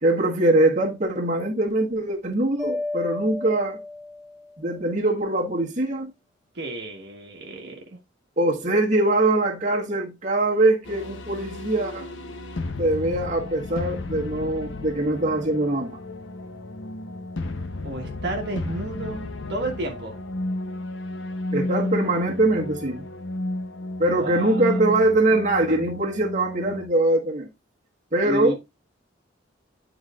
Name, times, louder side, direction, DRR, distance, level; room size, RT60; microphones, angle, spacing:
voice 1, 0.0-3.8 4.6-6.1 8.4-12.1 12.8-16.0 21.5-23.0 24.0-27.5 28.1-28.6, right 2 dB, 40° right, 1.4 m, -22 dB
Mallet percussion, 2.6-4.6, left 2 dB, 5° right, 1.3 m, -32 dB
voice 2, 6.5-8.0 17.8-20.2 24.1-24.8 28.2-28.6, right 1 dB, 60° right, 1.3 m, -32 dB
sound 1, 10.9-26.9, left 2 dB, 70° left, 0.8 m, -33 dB
10.5 x 4.0 x 2.4 m
head